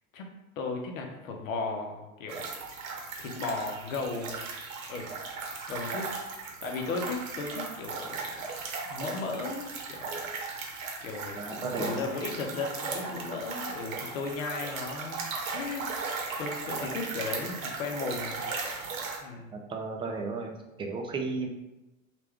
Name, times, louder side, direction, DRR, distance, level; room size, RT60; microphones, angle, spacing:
voice 1, 0.1-2.4 3.2-4.4 4.9-5.1 5.7-8.4 8.8-10.2 11.0-15.2 15.5-15.9 16.4-18.5 19.2-19.6, left 4 dB, 70° left, 2 dB, 0.7 m, -36 dB
sound 1, 2.3-19.2, right 4 dB, 70° right, 0.8 m, -37 dB
voice 2, 11.3-12.0 19.5-21.5, right 4 dB, 15° right, 2 dB, 0.3 m, -34 dB
3.2 x 2.5 x 3.4 m, 1.0 s
figure-of-eight pair, 75°, 41 cm